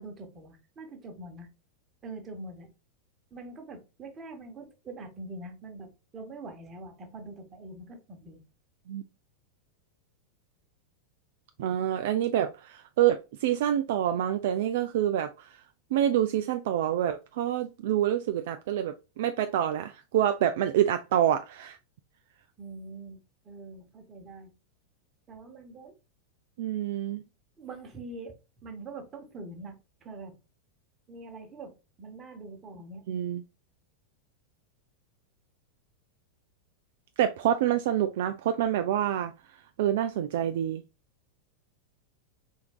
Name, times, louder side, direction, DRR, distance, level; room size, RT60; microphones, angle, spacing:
voice 1, 0.0-1.5 2.0-2.7 3.3-8.4 22.6-24.5 25.3-25.9 27.6-28.3 28.6-30.3 31.1-31.7 32.0-33.0, right 2 dB, 25° right, 1.2 m, -44 dB
voice 2, 11.6-15.6 15.9-21.8 26.6-27.2 33.1-33.4 37.2-39.3 39.8-40.8, right 11 dB, 55° right, 0.3 m, -27 dB
4.4 x 3.6 x 2.2 m
figure-of-eight pair, 90°, 0 cm